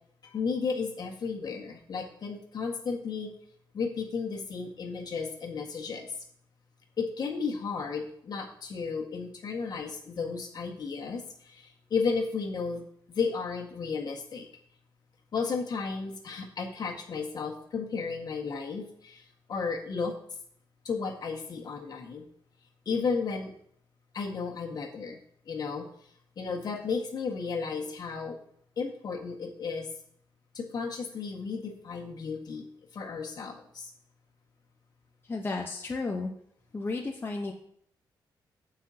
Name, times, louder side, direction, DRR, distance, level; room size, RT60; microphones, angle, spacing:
voice 1, 0.2-3.3 3.7-6.1 7.0-12.8 13.1-14.5 15.3-20.1 20.9-22.3 22.9-23.5 24.1-25.2 25.5-25.9 26.4-28.4 28.8-29.9 30.5-32.6 32.9-33.9, left 5 dB, 55° left, 2 dB, 1.6 m, -33 dB
voice 2, 35.3-36.3 36.7-37.5, left 3 dB, 25° left, 1 dB, 0.9 m, -33 dB
15.5 x 5.7 x 2.8 m, 0.67 s
cardioid pair, 115°, 8 cm